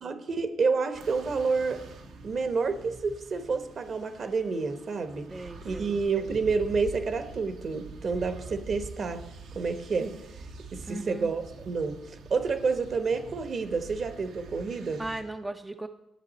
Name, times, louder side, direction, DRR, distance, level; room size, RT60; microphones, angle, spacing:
voice 1, 0.0-1.8 2.2-9.2 9.5-10.1 10.7-15.0, right 4 dB, 50° right, 9 dB, 1.0 m, -29 dB
sound 1, 0.9-15.2, right 3 dB, 80° right, 1.1 m, -46 dB
voice 2, 5.3-6.0 10.9-11.3 15.0-15.9, right 2 dB, 15° right, 7 dB, 0.4 m, -37 dB
10.5 x 7.8 x 4.2 m, 0.88 s
cardioid pair, 90°, 0 cm